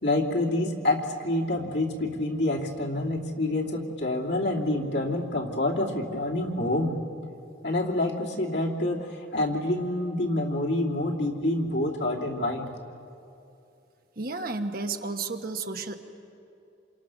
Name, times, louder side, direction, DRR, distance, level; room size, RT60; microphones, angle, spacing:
voice 1, 0.0-7.0 7.6-12.7, left 1 dB, 65° left, -1 dB, 2.9 m, -27 dB
voice 2, 14.2-16.0, right 3 dB, 50° right, 5 dB, 1.4 m, -32 dB
28.0 x 28.0 x 6.3 m, 2.6 s
head